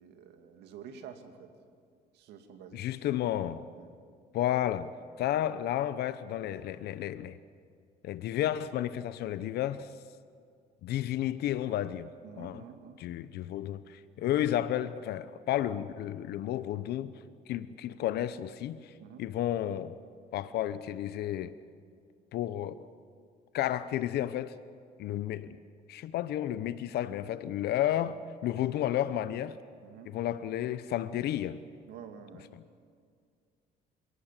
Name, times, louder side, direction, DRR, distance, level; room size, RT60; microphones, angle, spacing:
voice 1, 0.0-1.5 2.1-2.9 3.7-3.9 12.2-13.0 14.2-14.3 19.0-19.2 29.8-30.1 31.9-32.5, right 7 dB, 85° right, 2.4 m, -49 dB
voice 2, 2.7-3.7 4.3-4.9 5.2-7.4 8.0-9.9 10.8-12.1 12.4-12.6 13.0-18.9 19.2-20.0 20.3-21.5 22.3-22.7 23.5-24.5 25.0-25.6 25.9-29.6 30.0-31.6, left 12 dB, 75° left, 0.8 m, -32 dB
27.5 x 18.0 x 7.5 m
cardioid pair, 110°, 17 cm